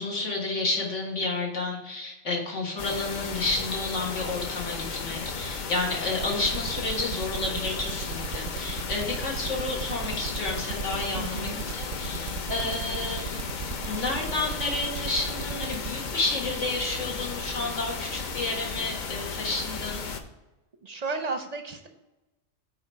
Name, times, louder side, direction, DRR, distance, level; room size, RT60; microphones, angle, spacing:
voice 1, 0.0-13.4 13.8-20.1, left 2 dB, 75° left, -2 dB, 1.9 m, -31 dB
sound 1, 2.8-20.2, left 4 dB, 50° left, 0.7 m, -34 dB
sound 2, 6.2-15.9, right 9 dB, 90° right, 0.9 m, -36 dB
voice 2, 11.2-11.7 20.8-21.9, right 3 dB, 45° right, 6 dB, 0.6 m, -34 dB
8.7 x 3.1 x 5.6 m, 1.0 s
omnidirectional pair, 1.2 m